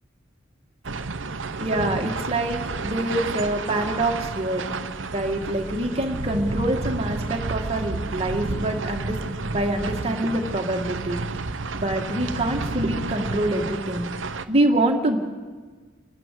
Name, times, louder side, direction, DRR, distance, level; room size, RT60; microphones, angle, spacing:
sound 1, 0.8-14.4, right 3 dB, 80° right, 0.9 m, -31 dB
voice 1, 1.6-4.7 5.1-9.2 9.4-11.2 11.7-14.0 14.5-15.2, right 1 dB, 30° right, 2 dB, 2.0 m, -25 dB
29.0 x 11.0 x 8.4 m, 1.4 s
head